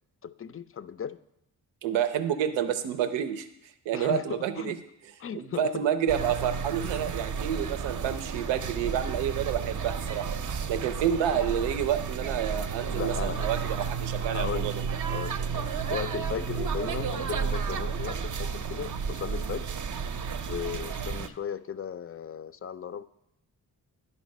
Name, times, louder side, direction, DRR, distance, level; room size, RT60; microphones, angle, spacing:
voice 1, 0.2-1.2 3.9-4.7 5.2-5.8 12.9-13.5 14.3-14.7 15.1-19.7 20.5-23.0, left 8 dB, 35° left, 14 dB, 0.4 m, -36 dB
voice 2, 1.8-3.5 3.9-4.8 5.3-10.3 10.7-14.8, right 9 dB, 90° right, 10 dB, 0.6 m, -29 dB
sound 1, 6.1-21.3, right 6 dB, 45° right, 0.6 m, -32 dB
10.5 x 4.1 x 5.3 m, 0.81 s
supercardioid pair, 45°, 43 cm